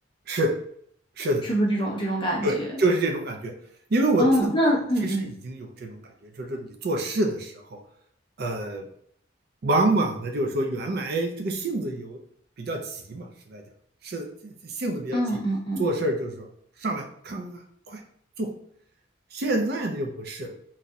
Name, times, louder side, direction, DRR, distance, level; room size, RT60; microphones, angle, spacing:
voice 1, 1.4-2.7 4.2-5.3 15.1-15.8, equal, 25° left, -3 dB, 0.9 m, -24 dB
voice 2, 2.4-3.5 3.9-4.5 5.0-5.2 5.4-6.0 6.4-7.8 8.4-8.9 9.6-12.2 12.6-13.6 14.0-15.4 15.8-16.4 16.8-18.0 18.4-18.5 19.3-20.5, right 2 dB, 55° right, 3 dB, 0.5 m, -27 dB
4.0 x 2.6 x 2.3 m, 0.65 s
head